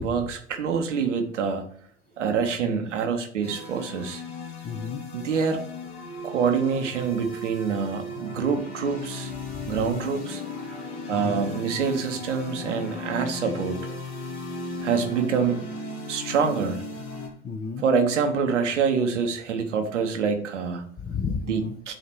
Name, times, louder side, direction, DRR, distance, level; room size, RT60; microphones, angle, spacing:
voice 1, 0.0-1.7 2.2-4.2 5.1-5.6 6.2-9.3 9.7-10.4 11.1-13.8 14.8-15.6 16.1-16.8 17.8-20.8 21.4-21.9, right 6 dB, 80° right, 5 dB, 1.1 m, -26 dB
sound 1, 3.4-17.3, left 2 dB, 55° left, 2.3 m, -36 dB
voice 2, 4.6-5.0 9.5-9.8 11.1-11.4 17.4-17.9 21.0-21.7, left 5 dB, 20° left, 4 dB, 0.7 m, -32 dB
7.8 x 2.9 x 4.5 m, 0.62 s
figure-of-eight pair, 75°, 36 cm